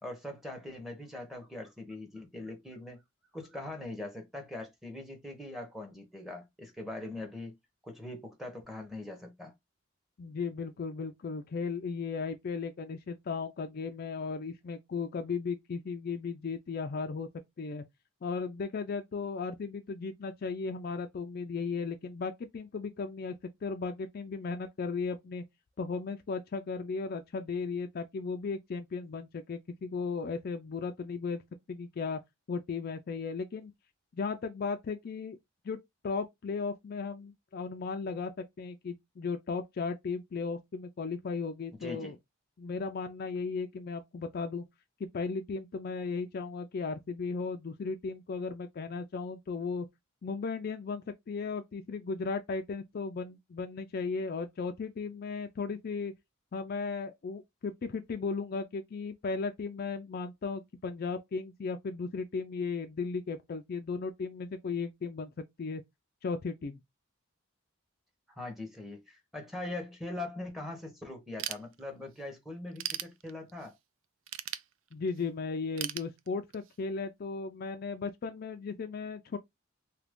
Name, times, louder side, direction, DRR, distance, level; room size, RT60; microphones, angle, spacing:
voice 1, 0.0-3.0 3.3-7.6 7.8-9.5 41.8-42.2 68.4-73.7, left 2 dB, ahead, 0.8 m, -42 dB
voice 2, 10.2-17.3 17.6-17.8 18.2-23.3 23.6-25.4 25.8-31.4 31.7-32.2 32.5-33.7 34.1-35.4 35.6-35.8 36.0-38.3 38.6-42.1 42.6-44.6 45.0-49.9 50.2-56.1 56.5-65.8 66.2-66.8 74.9-79.4, left 4 dB, 45° left, 0.3 m, -36 dB
Ratchet pawl / Tools, 71.4-72.2 72.6-73.7 74.3-75.2 75.8-76.8, right 12 dB, 65° right, 0.4 m, -38 dB
2.8 x 2.5 x 3.4 m
head